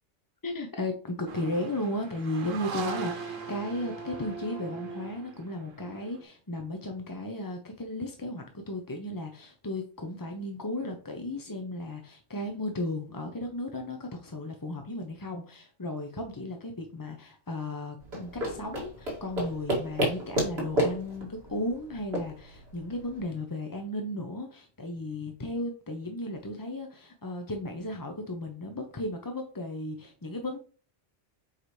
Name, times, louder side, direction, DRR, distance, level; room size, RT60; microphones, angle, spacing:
voice 1, 0.4-30.6, left 1 dB, 25° left, 4 dB, 0.5 m, -35 dB
sound 1, 1.3-6.2, right 5 dB, 90° right, 1.4 m, -39 dB
sound 2, 18.0-23.2, right 1 dB, 55° right, 2.5 m, -31 dB
7.9 x 4.9 x 3.2 m, 0.40 s
omnidirectional pair, 1.3 m